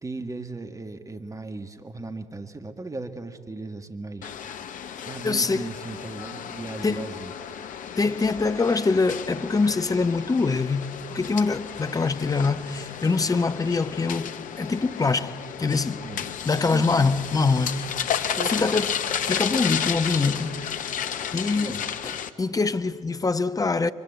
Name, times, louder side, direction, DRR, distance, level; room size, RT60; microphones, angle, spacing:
voice 1, 0.0-4.3 5.1-7.3 16.0-16.3 16.7-17.2 18.3-18.7 21.6-21.9, right 3 dB, 20° right, 1.8 m, -37 dB
sound 1, 4.2-22.3, left 8 dB, 55° left, 1.0 m, -33 dB
voice 2, 5.2-5.7 6.8-7.1 8.0-16.1 16.4-17.9 18.4-20.6 20.9-21.0 21.3-23.9, left 4 dB, 20° left, 1.0 m, -24 dB
23.5 x 21.5 x 8.2 m
figure-of-eight pair, 45°, 17 cm